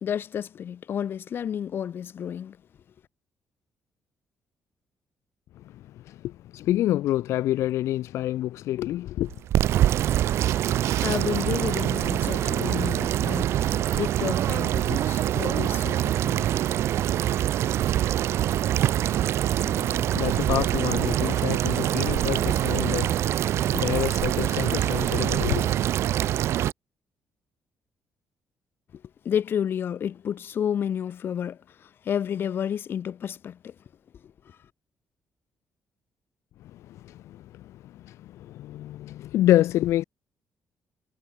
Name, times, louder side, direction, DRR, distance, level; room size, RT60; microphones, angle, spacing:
voice 1, 0.0-2.6 11.0-16.5 29.2-33.7 34.2-34.3, left 8 dB, 50° left, 2.5 m, -31 dB
voice 2, 5.7-9.3 19.6-25.7 36.7-40.0, left 14 dB, 85° left, 0.8 m, -28 dB
sound 1, 9.3-26.7, right 12 dB, 70° right, 0.6 m, -24 dB
Camera, 10.4-11.2 17.9-18.0, right 14 dB, 85° right, 1.4 m, -34 dB
cardioid pair, 140°, 5 cm